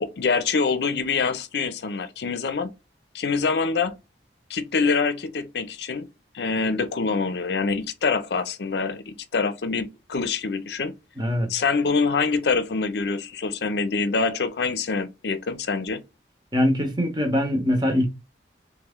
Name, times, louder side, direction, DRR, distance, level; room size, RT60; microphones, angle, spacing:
voice 1, 0.0-2.7 3.1-4.0 4.5-6.1 6.3-10.9 11.5-16.0, left 4 dB, 65° left, 0.5 m, -25 dB
voice 2, 11.2-11.5 16.5-18.1, left 1 dB, 25° right, 0.9 m, -22 dB
3.4 x 3.0 x 3.5 m
head